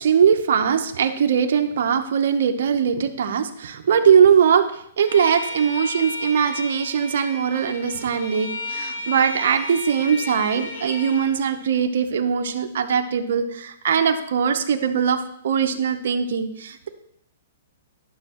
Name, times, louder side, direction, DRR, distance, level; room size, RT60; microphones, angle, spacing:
voice 1, 0.0-16.9, right 7 dB, 65° right, 6 dB, 0.8 m, -21 dB
Bowed string instrument, 5.0-11.3, left 2 dB, 70° left, 2.7 m, -33 dB
11.5 x 6.3 x 3.0 m, 0.69 s
hypercardioid pair, 145°, 0 cm